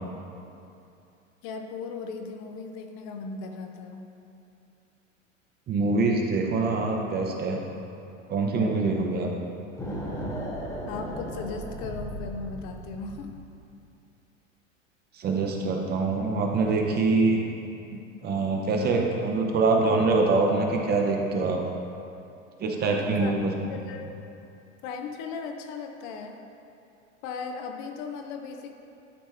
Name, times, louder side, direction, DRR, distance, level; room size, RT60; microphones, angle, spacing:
voice 1, 1.4-4.0 10.9-13.3 22.9-24.1 24.8-26.4 27.2-28.7, left 4 dB, 40° left, 5 dB, 0.6 m, -37 dB
voice 2, 5.7-7.6 8.3-9.3 15.1-17.4 18.2-21.6 22.6-23.5, right 3 dB, 25° right, 1 dB, 0.8 m, -24 dB
sound 1, 9.8-13.5, equal, 10° left, 1.3 m, -36 dB
11.5 x 4.3 x 3.4 m, 2.6 s
figure-of-eight pair, 85°, 39 cm